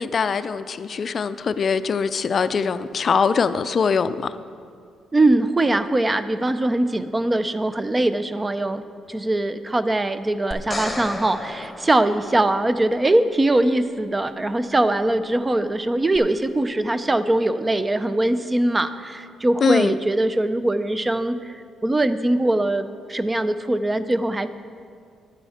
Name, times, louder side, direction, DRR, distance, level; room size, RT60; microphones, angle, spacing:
voice 1, 0.0-4.1 19.6-19.9, left 6 dB, 45° left, 13 dB, 0.4 m, -22 dB
voice 2, 5.1-8.8 9.1-24.5, right 1 dB, 20° right, 12 dB, 0.5 m, -22 dB
sound 1, 10.5-12.8 16.1-16.2, left 1 dB, 10° left, 1.2 m, -33 dB
10.5 x 9.1 x 4.2 m, 2.2 s
cardioid pair, 90°, 0 cm